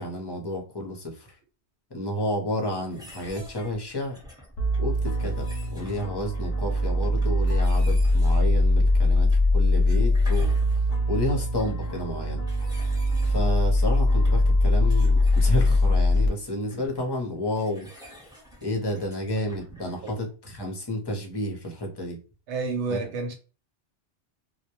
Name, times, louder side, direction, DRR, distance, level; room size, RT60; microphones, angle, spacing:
voice 1, 0.0-1.4 1.9-4.2 4.8-10.5 11.1-12.4 13.3-17.9 18.6-22.2 22.9-23.0, left 1 dB, 30° left, 0.6 m, -31 dB
sound 1, 2.9-20.3, equal, 5° right, 0.8 m, -49 dB
sound 2, 4.6-16.3, left 1 dB, 70° left, 0.8 m, -22 dB
voice 2, 22.5-23.3, right 3 dB, 85° right, 1.0 m, -29 dB
2.2 x 2.1 x 2.8 m
omnidirectional pair, 1.2 m